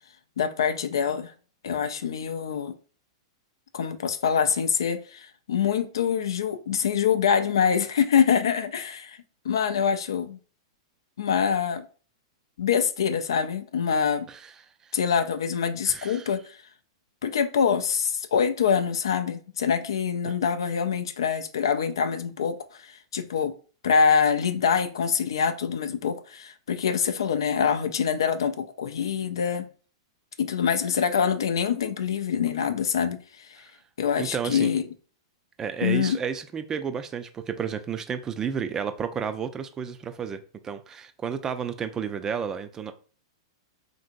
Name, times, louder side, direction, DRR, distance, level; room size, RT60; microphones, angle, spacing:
voice 1, 0.4-1.3 1.6-2.7 3.7-9.2 9.4-10.4 11.2-11.8 12.6-14.3 14.9-16.6 17.2-23.5 23.8-29.7 30.4-33.7 34.0-34.8 35.8-36.2, left 7 dB, 75° left, 0.4 m, -25 dB
voice 2, 15.9-16.3 34.2-34.7 35.6-42.9, right 7 dB, 20° right, 0.3 m, -31 dB
2.9 x 2.6 x 2.5 m
hypercardioid pair, 105°, 2 cm